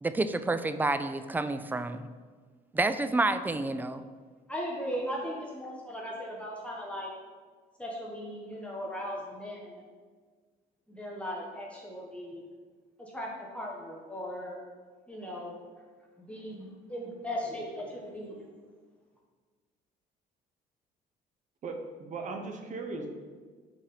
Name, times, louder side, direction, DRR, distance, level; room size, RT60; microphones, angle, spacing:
voice 1, 0.0-2.1 2.7-4.0, right 2 dB, 10° right, 11 dB, 0.3 m, -29 dB
voice 2, 4.5-7.1 7.8-9.8 10.9-12.4 13.0-14.6 15.1-15.5 16.2-18.6, equal, 5° left, -3 dB, 1.0 m, -38 dB
voice 3, 21.6-23.1, right 3 dB, 45° right, 4 dB, 0.9 m, -38 dB
5.7 x 4.2 x 5.1 m, 1.5 s
cardioid pair, 110°, 17 cm